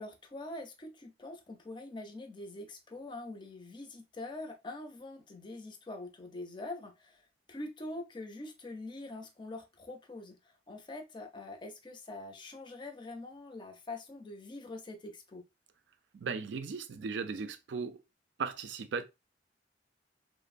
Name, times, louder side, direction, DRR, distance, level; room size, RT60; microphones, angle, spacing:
voice 1, 0.0-7.2 7.5-15.4, left 2 dB, 25° left, 0.5 m, -44 dB
voice 2, 16.1-18.0 18.4-19.0, right 5 dB, 90° right, 0.4 m, -37 dB
2.9 x 2.0 x 2.4 m
head